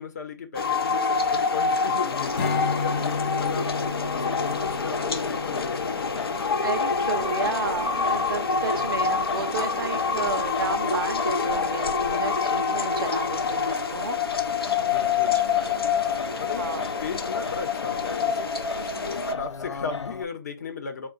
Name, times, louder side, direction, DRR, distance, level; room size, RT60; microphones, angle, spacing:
voice 1, 0.0-3.7 4.1-6.2 14.8-15.4 16.4-21.1, left 6 dB, 35° left, 1.1 m, -36 dB
sound 1, 0.5-19.3, left 5 dB, 60° left, 0.8 m, -26 dB
Singing, 2.1-20.2, left 5 dB, 90° left, 0.5 m, -36 dB
Strum, 2.4-7.8, left 4 dB, 20° left, 0.5 m, -34 dB
voice 2, 6.6-14.2 14.6-14.7 15.3-15.4 16.6-16.8, right 6 dB, 50° right, 0.5 m, -32 dB
4.9 x 2.3 x 4.1 m
hypercardioid pair, 160°, 14 cm